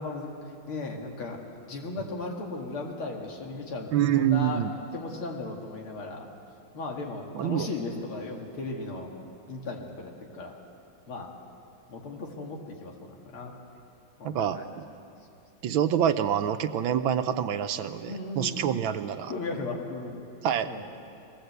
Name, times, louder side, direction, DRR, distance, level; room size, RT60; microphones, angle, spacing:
voice 1, 0.0-1.4 1.7-4.6 4.9-6.3 6.7-9.1 9.5-10.6 11.1-11.3 11.9-13.5 14.2-14.8 18.0-18.7 19.3-20.2 20.6-20.8, left 3 dB, 85° left, 0 dB, 2.9 m, -36 dB
voice 2, 3.9-4.7 7.3-7.7 14.2-14.6 15.6-19.3 20.4-20.7, right 9 dB, 80° right, 9 dB, 1.5 m, -26 dB
22.5 x 17.0 x 8.0 m, 2.6 s
omnidirectional pair, 2.3 m